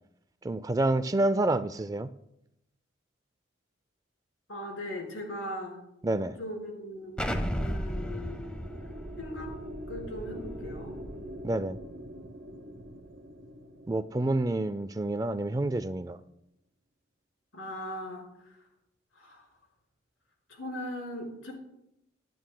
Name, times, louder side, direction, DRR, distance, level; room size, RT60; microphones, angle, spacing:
voice 1, 0.4-2.1 6.0-6.4 11.4-11.8 13.9-16.2, right 2 dB, 20° right, 0.3 m, -28 dB
voice 2, 4.5-5.8 6.4-8.4 9.2-9.5 9.9-10.9 17.5-18.5 19.1-19.5 20.5-21.5, equal, 90° left, 4.8 m, -39 dB
sound 1, 6.9-15.5, equal, 60° right, 0.8 m, -45 dB
Explosion, 7.2-11.9, equal, 5° left, 0.7 m, -36 dB
24.5 x 9.4 x 2.2 m
head